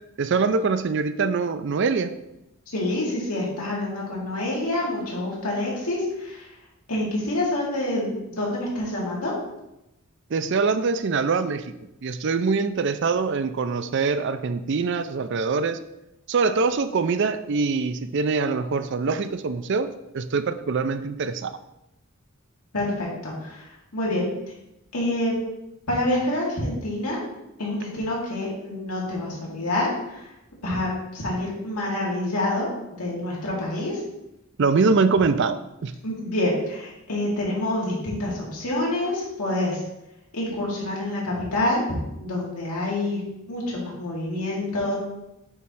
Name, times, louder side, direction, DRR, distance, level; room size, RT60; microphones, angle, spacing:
voice 1, 0.2-2.1 10.3-11.7 12.0-15.8 16.3-19.9 20.1-21.5 34.6-35.9, right 4 dB, 55° right, 12 dB, 0.4 m, -23 dB
voice 2, 2.7-6.5 6.9-9.3 22.7-24.3 24.9-25.3 25.9-27.2 27.6-30.3 30.6-32.7 33.0-34.0 36.0-39.8 40.3-41.8 42.2-43.2 43.5-45.0, left 1 dB, 90° left, -5 dB, 2.7 m, -27 dB
8.1 x 3.2 x 5.6 m, 0.90 s
head